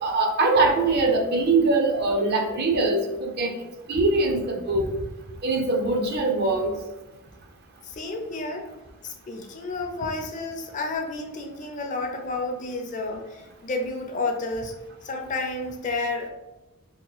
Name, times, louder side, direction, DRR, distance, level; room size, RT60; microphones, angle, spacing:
voice 1, 0.0-3.5 3.9-4.9 5.4-6.7, right 3 dB, 50° right, 3 dB, 0.5 m, -22 dB
voice 2, 7.8-8.7 9.0-14.7 15.0-16.3, left 3 dB, 35° left, 4 dB, 0.4 m, -31 dB
2.9 x 2.3 x 3.8 m, 1.0 s
head